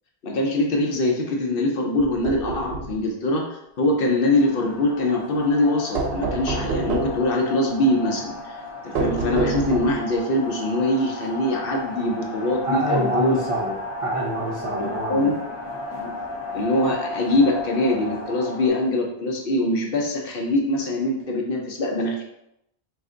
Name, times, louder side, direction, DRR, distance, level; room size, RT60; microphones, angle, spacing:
voice 1, 0.2-8.6 8.8-13.4 14.8-15.3 16.0-16.1 16.5-22.2, left 1 dB, 65° left, 1 dB, 0.8 m, -23 dB
sound 1, 2.0-3.0 5.9-7.3 8.9-10.1, right 3 dB, 80° right, 0.8 m, -27 dB
sound 2, 4.0-18.7, left 2 dB, 30° left, 0.6 m, -34 dB
voice 2, 12.6-15.3, right 1 dB, 40° right, -3 dB, 0.6 m, -26 dB
3.2 x 2.6 x 3.7 m, 0.81 s
omnidirectional pair, 1.0 m